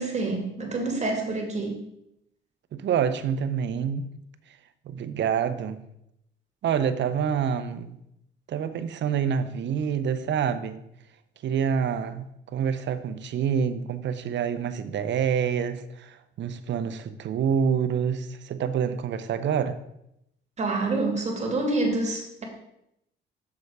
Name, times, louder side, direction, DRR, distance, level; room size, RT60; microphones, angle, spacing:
voice 1, 0.0-1.8 20.6-22.4, right 2 dB, 35° right, 2.6 m, -27 dB
voice 2, 2.7-4.1 4.8-5.8 6.6-8.0 8.5-10.8 11.4-19.8, right 7 dB, 65° right, 0.8 m, -27 dB
7.0 x 6.7 x 4.8 m
cardioid pair, 90°, 20 cm